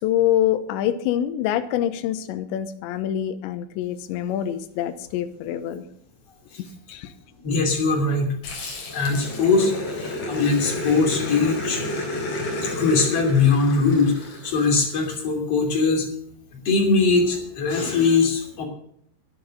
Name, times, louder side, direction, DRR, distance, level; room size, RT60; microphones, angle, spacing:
voice 1, 0.0-5.8 6.9-7.1, left 11 dB, 80° left, 9 dB, 3.0 m, -25 dB
voice 2, 7.4-8.3 8.9-11.8 12.7-16.1 16.7-18.7, left 4 dB, 35° left, 0 dB, 3.4 m, -21 dB
Growling, 8.4-15.1, left 2 dB, 60° left, 5.2 m, -31 dB
11.5 x 11.0 x 6.5 m, 0.67 s
omnidirectional pair, 5.5 m